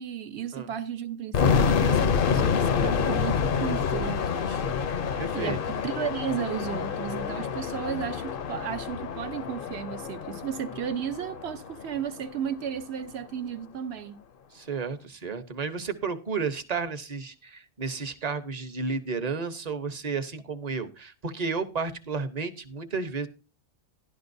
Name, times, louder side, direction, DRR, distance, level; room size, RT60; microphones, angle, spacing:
voice 1, 0.0-4.6 5.3-14.2, right 8 dB, 70° right, 1.0 m, -34 dB
sound 1, 1.3-12.2, left 6 dB, 55° left, 0.8 m, -27 dB
voice 2, 5.2-5.6 14.5-23.3, right 5 dB, 40° right, 0.8 m, -32 dB
12.5 x 11.5 x 2.6 m
omnidirectional pair, 1.2 m